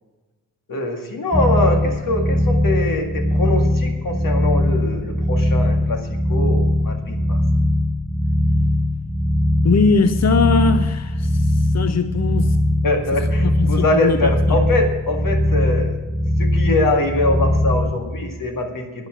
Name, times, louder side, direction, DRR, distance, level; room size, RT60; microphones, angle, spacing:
voice 1, 0.7-7.4 12.8-16.0 16.4-19.1, left 1 dB, 90° left, 2.1 m, -23 dB
sound 1, 1.3-17.9, left 1 dB, 5° right, 2.5 m, -20 dB
voice 2, 9.6-12.6 13.4-14.6, left 4 dB, 55° left, 0.8 m, -20 dB
10.5 x 9.4 x 7.6 m
cardioid pair, 45°, 32 cm